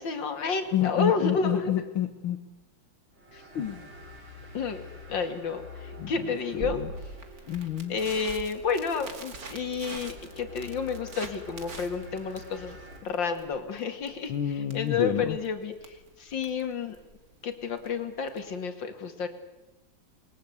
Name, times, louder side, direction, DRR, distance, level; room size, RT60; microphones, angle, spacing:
voice 1, 0.0-1.7 3.3-3.4 4.5-4.8 5.1-6.8 7.9-12.8 13.0-14.3 14.7-17.0 17.4-19.3, left 5 dB, 65° left, 7 dB, 2.9 m, -30 dB
voice 2, 0.7-2.4 3.5-3.9 6.0-6.9 7.5-7.9 14.3-15.4, left 10 dB, 85° left, 6 dB, 2.2 m, -29 dB
sound 1, 3.1-13.0, left 2 dB, 80° right, 6.8 m, -47 dB
Crackle, 6.6-18.6, right 4 dB, 45° right, 2.7 m, -45 dB
29.0 x 21.5 x 8.2 m, 1.0 s
omnidirectional pair, 2.2 m